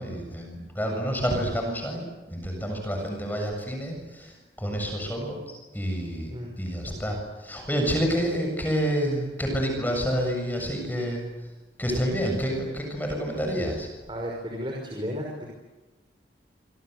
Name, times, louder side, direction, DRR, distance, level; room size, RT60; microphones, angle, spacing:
voice 1, 0.0-6.3 6.6-11.2 11.8-13.9, equal, 10° left, 2 dB, 7.2 m, -28 dB
voice 2, 14.1-15.5, equal, 25° right, -1 dB, 5.7 m, -33 dB
27.5 x 26.0 x 8.1 m, 1.2 s
head